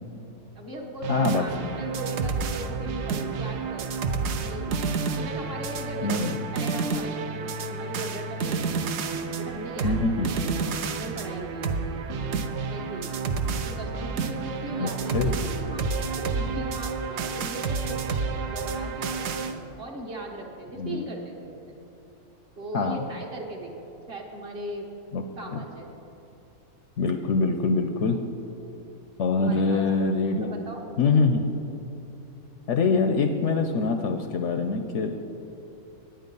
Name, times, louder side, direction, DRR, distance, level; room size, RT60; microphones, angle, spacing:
voice 1, 0.5-3.9 4.4-8.7 9.4-11.8 12.7-13.3 13.6-21.8 22.6-24.9 25.3-25.9 28.5-28.8 29.4-29.8 30.2-31.1, right 1 dB, 45° right, 0 dB, 1.2 m, -39 dB
sound 1, 1.0-19.5, right 4 dB, 60° right, 0.8 m, -30 dB
voice 2, 1.1-1.8 6.0-6.4 9.8-10.3 14.8-15.4 20.8-21.0 22.7-23.0 25.1-25.2 25.5-25.6 27.0-28.2 29.2-30.5 31.0-31.5 32.7-35.2, left 4 dB, 65° left, 6 dB, 0.8 m, -24 dB
10.0 x 9.0 x 5.3 m, 2.9 s
omnidirectional pair, 1.6 m